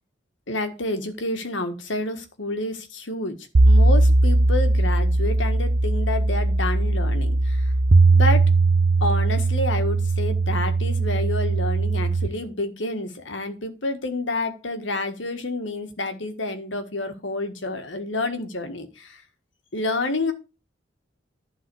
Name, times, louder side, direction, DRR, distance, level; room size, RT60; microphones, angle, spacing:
voice 1, 0.5-7.7 8.1-8.5 9.0-19.2 19.7-20.3, left 2 dB, 75° left, 8 dB, 1.6 m, -29 dB
sound 1, 3.5-12.3, right 2 dB, 85° right, 0.9 m, -19 dB
11.0 x 4.0 x 7.0 m, 0.30 s
head